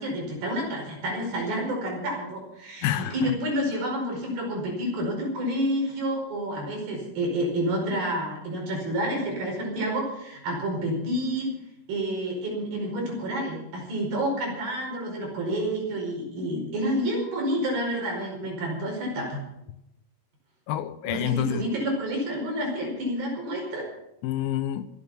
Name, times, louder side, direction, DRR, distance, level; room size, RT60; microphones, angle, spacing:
voice 1, 0.0-11.5 11.9-19.4 21.0-23.9, equal, 75° right, 0 dB, 6.8 m, -29 dB
voice 2, 2.8-3.4 20.7-21.6 24.2-24.9, left 12 dB, 80° left, 13 dB, 2.5 m, -28 dB
26.0 x 9.0 x 5.6 m, 0.85 s
omnidirectional pair, 4.2 m